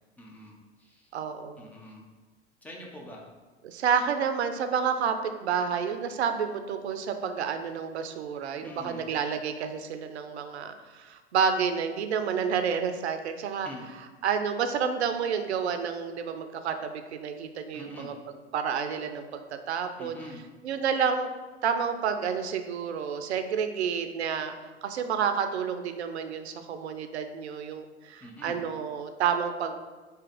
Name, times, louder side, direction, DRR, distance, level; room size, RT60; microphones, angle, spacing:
voice 1, 0.2-1.1 1.6-2.0 2.6-3.2 8.6-9.0 13.6-13.8 17.7-18.1 20.0-20.4 28.2-28.6, equal, 5° left, -2 dB, 0.3 m, -44 dB
voice 2, 1.1-1.7 3.6-13.7 14.2-18.1 18.5-20.2 20.6-21.3 21.6-24.5 24.8-29.8, right 7 dB, 70° right, 8 dB, 0.5 m, -29 dB
3.4 x 2.8 x 3.6 m, 1.3 s
figure-of-eight pair, 85°, 35 cm